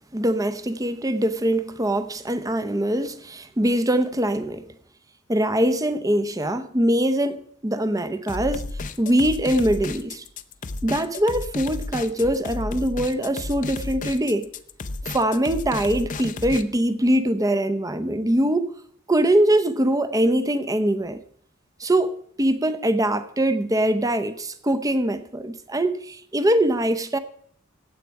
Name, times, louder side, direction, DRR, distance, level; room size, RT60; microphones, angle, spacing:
voice 1, 0.0-4.6 5.3-8.7 9.0-10.2 10.8-14.5 15.1-18.7 19.1-21.2 21.8-22.1 22.4-27.2, right 1 dB, 15° right, 0.7 m, -22 dB
sound 1, 8.3-16.6, left 3 dB, 40° left, 0.6 m, -33 dB
15.0 x 8.4 x 4.7 m
head